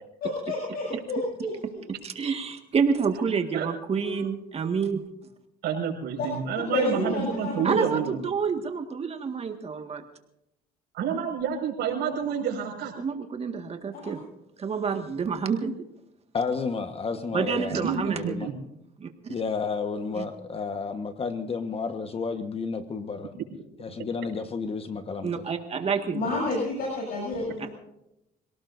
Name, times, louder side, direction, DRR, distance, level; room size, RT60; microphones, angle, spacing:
voice 1, 0.2-1.8 4.0-4.2 6.2-6.3 6.7-7.5 13.9-14.2 26.1-27.7, left 2 dB, 65° left, -2 dB, 7.7 m, -30 dB
voice 2, 2.0-5.0 7.6-10.0 13.0-14.2 14.6-15.7 17.3-18.2 19.0-19.3 20.2-20.3 25.2-26.2 27.6-27.7, right 6 dB, 35° right, 5 dB, 1.9 m, -28 dB
voice 3, 5.6-8.2 10.9-12.9 17.7-18.5, right 7 dB, 80° right, 1 dB, 5.6 m, -29 dB
voice 4, 16.3-18.5 19.3-23.3 23.8-25.4 26.2-26.4, left 5 dB, 35° left, 7 dB, 1.4 m, -31 dB
27.5 x 18.0 x 2.7 m, 0.84 s
cardioid pair, 110°, 17 cm